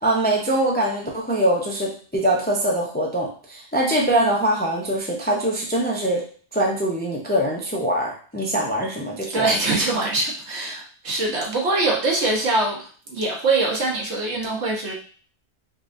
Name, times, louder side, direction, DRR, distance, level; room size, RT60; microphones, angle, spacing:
voice 1, 0.0-6.2 6.5-9.6, right 1 dB, 15° left, -1 dB, 0.4 m, -23 dB
voice 2, 9.3-14.9, right 2 dB, 75° right, -2 dB, 1.3 m, -23 dB
5.1 x 2.4 x 2.6 m, 0.44 s
omnidirectional pair, 1.2 m